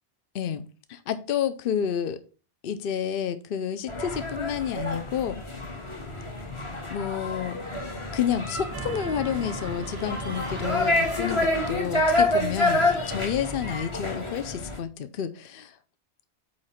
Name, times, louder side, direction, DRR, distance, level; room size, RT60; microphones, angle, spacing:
voice 1, 0.9-2.2 2.6-5.4 6.9-7.6 8.1-15.8, left 8 dB, 60° left, 10 dB, 0.8 m, -30 dB
sound 1, 3.9-14.8, left 2 dB, 25° left, 1.3 m, -28 dB
sound 2, 8.7-11.9, right 4 dB, 25° right, 0.7 m, -39 dB
8.7 x 3.2 x 5.7 m, 0.36 s
omnidirectional pair, 1.2 m